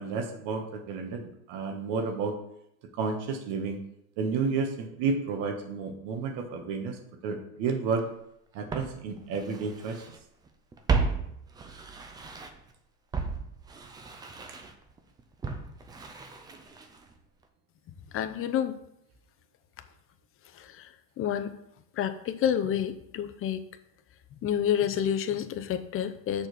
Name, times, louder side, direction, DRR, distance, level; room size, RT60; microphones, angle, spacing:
voice 1, 0.0-2.4 3.0-3.8 4.2-8.0 8.5-10.0, right 5 dB, 55° right, 5 dB, 1.4 m, -31 dB
Walk footsteps, 8.0-8.1 8.7-10.2 10.5-12.7 13.1-17.2 17.4-17.5, right 4 dB, 10° right, 0.3 m, -34 dB
voice 2, 18.1-18.7 20.6-20.9 21.2-21.5 22.0-23.6 24.4-26.5, left 9 dB, 25° left, 9 dB, 0.6 m, -29 dB
6.7 x 4.3 x 6.1 m, 0.78 s
hypercardioid pair, 110°, 50 cm